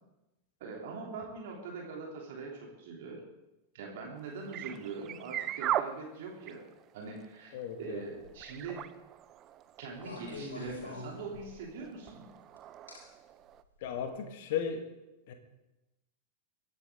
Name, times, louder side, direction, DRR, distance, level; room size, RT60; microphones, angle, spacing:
voice 1, 0.6-3.2 3.7-6.6 6.9-8.8 9.8-12.3, right 4 dB, 55° right, -1 dB, 3.2 m, -42 dB
sound 1, 4.2-13.6, right 12 dB, 30° right, 0.5 m, -40 dB
voice 2, 7.5-8.0 13.8-14.9 15.3-15.4, left 8 dB, 50° left, 7 dB, 1.9 m, -35 dB
sound 2, 8.2-8.6 10.0-11.8 12.9-13.0 13.8-14.0, left 2 dB, 70° left, 4.3 m, -44 dB
23.5 x 10.0 x 3.8 m, 0.97 s
figure-of-eight pair, 90°, 0 cm